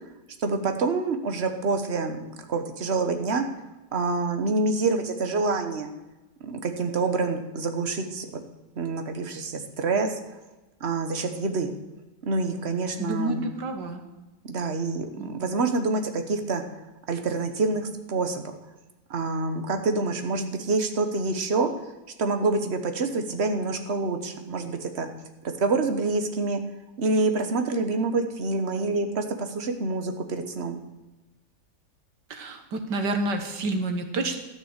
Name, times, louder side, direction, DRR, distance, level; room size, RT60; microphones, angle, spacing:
voice 1, 0.4-2.2 2.5-3.4 3.9-5.9 6.4-8.3 8.8-10.4 10.8-11.7 12.2-13.4 14.4-16.6 17.1-18.6 19.1-21.7 22.2-25.1 25.4-26.6 27.0-30.8, right 3 dB, 40° right, 6 dB, 1.3 m, -27 dB
voice 2, 13.0-14.0 15.2-15.4 32.3-34.4, right 2 dB, 85° right, 6 dB, 2.0 m, -29 dB
13.0 x 6.2 x 8.1 m, 1.1 s
omnidirectional pair, 1.8 m